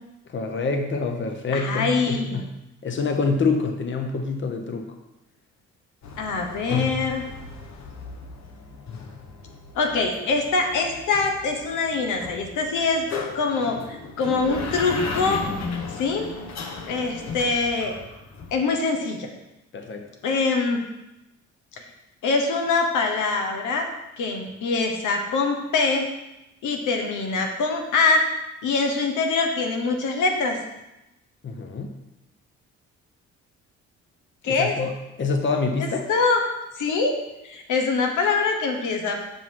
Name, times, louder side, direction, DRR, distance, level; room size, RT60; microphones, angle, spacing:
voice 1, 0.3-2.5 2.8-4.9 19.7-20.1 31.4-31.9 34.4-34.9 35.2-36.0, left 4 dB, 40° left, 4 dB, 1.0 m, -26 dB
voice 2, 1.5-2.4 6.2-7.2 9.7-13.1 13.3-15.4 15.9-16.3 16.9-17.9 18.5-19.3 20.2-20.8 21.8-21.9 22.2-23.9 24.2-26.1 26.6-28.3 28.6-30.6 34.4-34.7 35.8-36.4 36.8-37.1 37.4-39.2, left 4 dB, 80° left, 3 dB, 1.4 m, -24 dB
sound 1, 6.0-18.5, left 4 dB, 60° left, 1.3 m, -35 dB
8.2 x 5.7 x 4.7 m, 0.94 s
cardioid pair, 90°, 30 cm